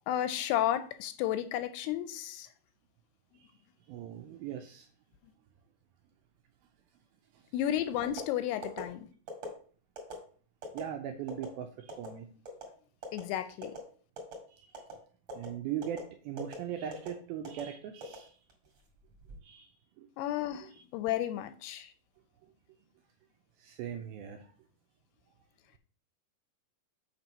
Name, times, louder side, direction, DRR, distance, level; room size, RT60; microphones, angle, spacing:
voice 1, 0.1-2.5 7.5-9.1 13.1-13.8 20.2-21.9, left 11 dB, 85° left, 2.4 m, -32 dB
voice 2, 3.9-4.9 7.3-7.4 10.7-12.3 14.5-14.8 15.3-18.4 19.4-19.7 20.0-20.1 20.6-20.8 23.6-24.5, right 9 dB, 85° right, 2.1 m, -40 dB
sound 1, 8.0-8.3 8.6-8.8 9.3-9.5 10.0-10.1 10.6-10.8 11.3-11.5 11.9-12.1 12.5-12.7 13.0-13.2 13.6-13.8 14.2-14.4 14.7-14.9 15.3-15.5 15.8-16.0 16.4-16.6 16.9-17.1 17.4-17.6 18.0-18.7 19.1-19.4, right 3 dB, 40° right, 2.0 m, -42 dB
7.4 x 4.5 x 5.3 m
omnidirectional pair, 4.9 m